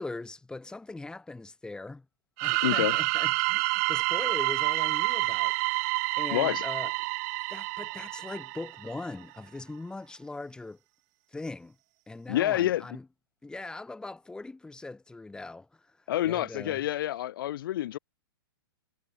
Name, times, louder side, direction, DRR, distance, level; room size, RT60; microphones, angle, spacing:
voice 1, 0.0-2.1 2.4-5.6 6.2-6.9 7.5-10.8 11.3-11.8 12.1-13.1 13.4-15.9 16.2-16.8, left 2 dB, 5° left, 3.7 m, -40 dB
sound 1, 2.4-9.0, right 29 dB, 40° right, 0.8 m, -28 dB
voice 2, 2.6-3.0 6.3-6.6 12.3-12.8 16.1-18.0, left 13 dB, 60° left, 1.1 m, -28 dB
hypercardioid pair, 130°, 13 cm